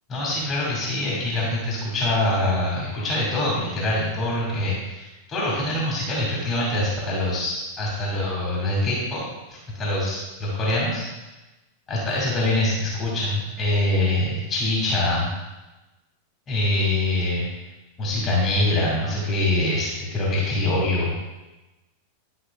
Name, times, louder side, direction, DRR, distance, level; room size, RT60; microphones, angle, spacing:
voice 1, 0.1-9.2 9.5-11.0 11.9-15.3 16.5-17.5 18.0-21.1, left 1 dB, 25° left, -5 dB, 2.2 m, -24 dB
11.5 x 5.5 x 2.3 m, 1.1 s
figure-of-eight pair, 90°, 0 cm